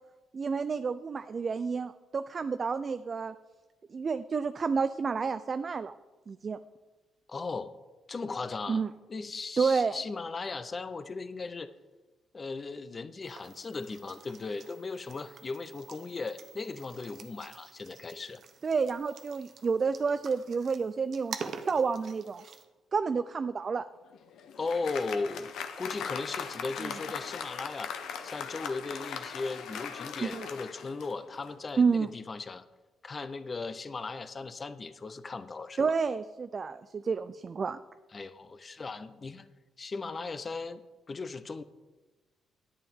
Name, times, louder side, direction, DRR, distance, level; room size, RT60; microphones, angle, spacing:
voice 1, 0.3-3.3 3.9-5.9 6.3-6.6 8.7-8.9 9.6-10.0 18.6-22.4 22.9-23.9 26.8-26.9 30.2-30.5 31.8-32.1 35.8-37.8, right 5 dB, 40° right, 11 dB, 0.3 m, -30 dB
voice 2, 7.3-7.7 8.1-8.8 9.1-11.7 12.3-18.4 24.6-27.9 28.2-32.6 33.0-35.9 38.1-39.5 39.8-40.8 41.1-41.6, left 4 dB, 35° left, 12 dB, 0.5 m, -37 dB
sound 1, 13.2-22.7, right 6 dB, 55° right, 0.8 m, -47 dB
Applause, 24.1-31.6, left 7 dB, 80° left, 0.8 m, -40 dB
10.5 x 9.0 x 3.6 m, 1.2 s
cardioid pair, 90°, 0 cm